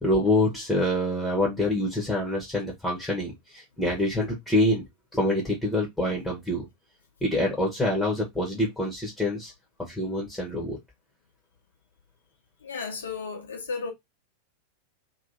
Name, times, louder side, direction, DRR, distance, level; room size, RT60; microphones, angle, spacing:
voice 1, 0.0-4.8 5.1-6.7 7.2-9.5 9.9-10.8, left 1 dB, 5° left, 1.1 m, -26 dB
voice 2, 12.6-13.9, left 4 dB, 65° left, 1.0 m, -34 dB
2.9 x 2.9 x 2.6 m
figure-of-eight pair, 90°, 0 cm